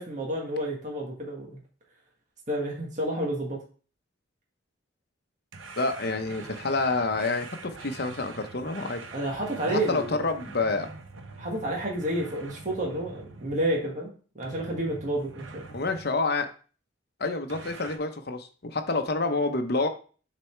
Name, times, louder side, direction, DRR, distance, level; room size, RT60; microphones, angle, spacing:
voice 1, 0.0-1.6 2.5-3.6 9.1-10.2 11.4-15.7, right 1 dB, 40° right, -2 dB, 1.6 m, -30 dB
sound 1, 5.5-14.0 14.4-16.1 17.5-18.0, right 3 dB, 75° right, 0.9 m, -44 dB
voice 2, 5.8-9.0 9.7-10.9 15.7-16.5 17.2-19.9, left 3 dB, 50° left, 6 dB, 0.9 m, -28 dB
6.9 x 4.2 x 4.5 m, 0.39 s
head